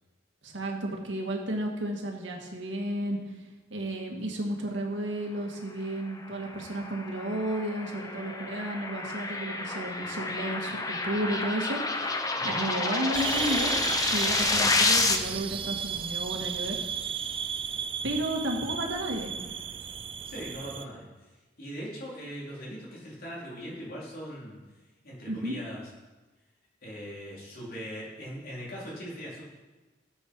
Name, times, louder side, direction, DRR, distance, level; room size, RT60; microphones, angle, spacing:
voice 1, 0.4-3.2 3.7-16.8 18.0-19.6 25.3-25.6, right 1 dB, 75° right, 1 dB, 2.1 m, -33 dB
sound 1, 6.3-15.2, left 3 dB, 20° left, 0.8 m, -29 dB
sound 2, 13.1-20.8, right 7 dB, 30° right, 0.4 m, -34 dB
voice 2, 20.2-21.3 21.6-24.6 25.0-25.9 26.8-29.4, equal, 50° left, -5 dB, 4.1 m, -40 dB
17.0 x 7.9 x 4.8 m, 1.2 s
head